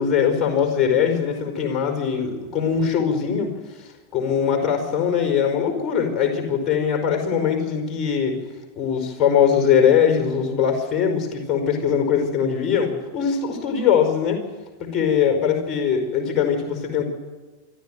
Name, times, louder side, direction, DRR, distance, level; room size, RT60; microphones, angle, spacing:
voice 1, 0.0-3.5 4.1-8.4 8.8-14.4 14.8-17.0, left 7 dB, 25° left, 4 dB, 4.9 m, -21 dB
26.0 x 13.0 x 9.3 m, 1.3 s
figure-of-eight pair, 90°, 0 cm